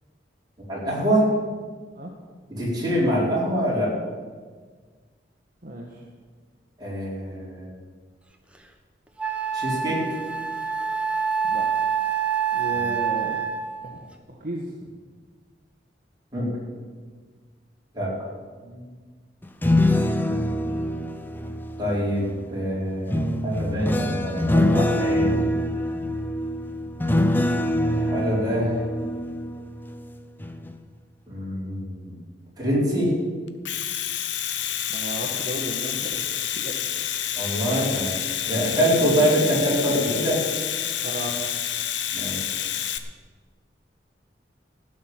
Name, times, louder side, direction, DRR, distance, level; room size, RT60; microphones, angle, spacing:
voice 1, 0.7-1.3 2.5-3.9 6.8-7.7 9.5-10.0 12.7-12.9 16.3-16.5 17.9-18.1 21.8-25.4 27.8-28.9 31.3-32.1 32.6-33.1 37.4-38.1 38.4-40.4 42.1-42.5, equal, 25° right, -6 dB, 4.9 m, -25 dB
voice 2, 5.6-6.0 11.5-11.6 12.5-13.4 13.8-14.9 18.6-18.9 34.9-36.2 36.5-37.1 38.7-39.0 41.0-41.4, right 1 dB, 50° right, -2 dB, 1.5 m, -35 dB
Wind instrument woodwind instrument, 8.5-8.6 9.2-13.8, right 7 dB, 5° right, 1.1 m, -26 dB
sound 1, 19.4-22.3 23.1-30.0 30.4-30.7, left 1 dB, 10° left, 0.7 m, -24 dB
Domestic sounds home sounds, 33.5-43.0, left 10 dB, 75° left, 0.8 m, -28 dB
15.0 x 6.4 x 9.0 m, 1.5 s
head